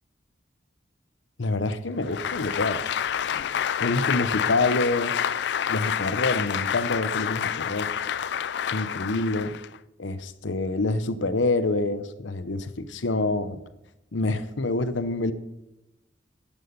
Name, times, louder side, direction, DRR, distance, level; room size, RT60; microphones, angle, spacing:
voice 1, 1.4-2.9 3.8-5.1 5.7-7.9 8.7-9.6 10.0-13.6 14.1-15.3, left 2 dB, 90° left, 12 dB, 0.8 m, -26 dB
Applause, 2.0-9.8, left 8 dB, 65° left, 0.4 m, -28 dB
11.0 x 11.0 x 5.4 m, 0.97 s
head